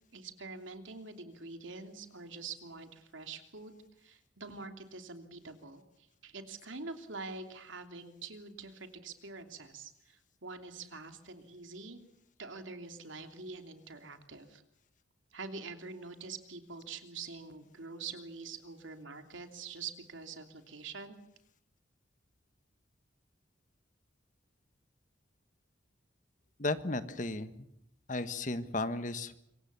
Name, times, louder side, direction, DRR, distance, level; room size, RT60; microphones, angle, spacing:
voice 1, 0.1-12.0 12.4-14.6 15.3-21.2, right 4 dB, 80° right, 6 dB, 3.0 m, -45 dB
voice 2, 26.6-27.7 28.1-29.3, left 2 dB, 40° left, 11 dB, 1.4 m, -34 dB
26.0 x 24.0 x 7.0 m, 0.76 s
head